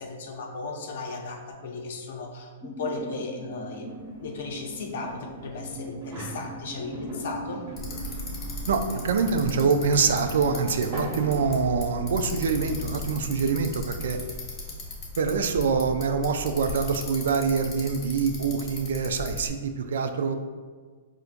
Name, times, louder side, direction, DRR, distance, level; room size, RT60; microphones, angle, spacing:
voice 1, 0.0-7.6, left 3 dB, 70° left, 1 dB, 0.5 m, -36 dB
sound 1, 2.6-10.2, equal, 5° left, 0.3 m, -41 dB
sound 2, 3.9-12.9, right 2 dB, 50° right, 0.9 m, -43 dB
Bicycle, 7.8-19.5, left 2 dB, 25° left, 1.0 m, -37 dB
voice 2, 8.7-14.2 15.2-20.4, right 5 dB, 80° right, 8 dB, 0.3 m, -25 dB
4.4 x 2.5 x 2.5 m, 1.5 s
hypercardioid pair, 145°, 0 cm